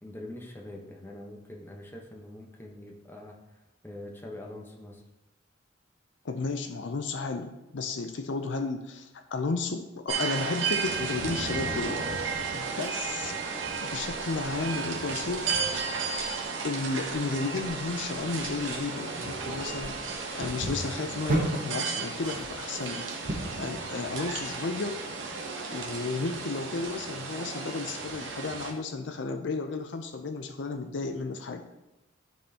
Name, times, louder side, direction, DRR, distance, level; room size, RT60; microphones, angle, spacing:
voice 1, 0.0-3.4 3.8-5.0, left 1 dB, 10° left, -1 dB, 1.0 m, -43 dB
voice 2, 6.2-12.0 12.5-13.4 13.8-15.5 16.6-25.0 25.7-31.8, left 3 dB, 65° left, 7 dB, 0.5 m, -33 dB
sound 1, 10.1-28.7, right 5 dB, 75° right, 1.1 m, -34 dB
Slip steps, 12.1-23.7, right 2 dB, 45° right, 1.2 m, -38 dB
12.5 x 4.3 x 2.8 m, 0.98 s
head